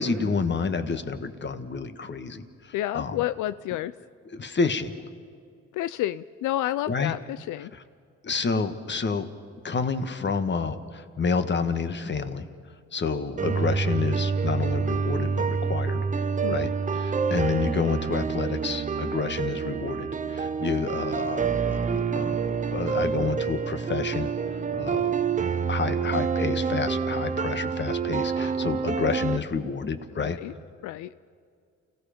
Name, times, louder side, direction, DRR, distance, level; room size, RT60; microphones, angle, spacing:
voice 1, 0.0-2.4 2.9-3.2 4.3-4.9 6.9-7.1 8.2-9.3 9.6-12.4 12.9-16.0 16.5-24.3 24.7-25.1 25.7-30.4, left 5 dB, 35° left, 10 dB, 1.5 m, -29 dB
voice 2, 2.7-3.9 5.7-7.7 16.4-16.6 30.2-30.5 30.8-31.1, left 14 dB, 85° left, 15 dB, 0.5 m, -30 dB
sound 1, 13.4-29.4, right 5 dB, 25° right, 0.8 m, -27 dB
29.0 x 17.0 x 5.2 m, 2.3 s
cardioid pair, 90°, 30 cm